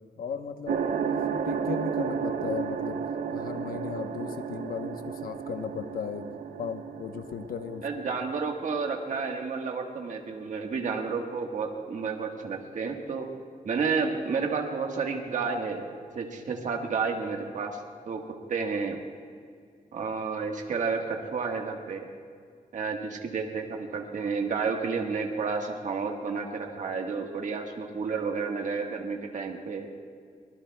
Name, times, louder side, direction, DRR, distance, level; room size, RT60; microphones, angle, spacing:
voice 1, 0.2-3.0 3.3-6.3 6.6-7.8, left 6 dB, 85° left, 7 dB, 1.0 m, -36 dB
sound 1, 0.7-9.4, right 7 dB, 75° right, 0.8 m, -33 dB
voice 2, 7.8-13.3 13.6-15.8 16.1-17.8 18.1-18.2 18.5-19.0 19.9-22.1 22.7-29.9, right 5 dB, 60° right, 2 dB, 1.5 m, -31 dB
24.0 x 20.5 x 2.3 m, 2.1 s
wide cardioid pair, 125°, 14 cm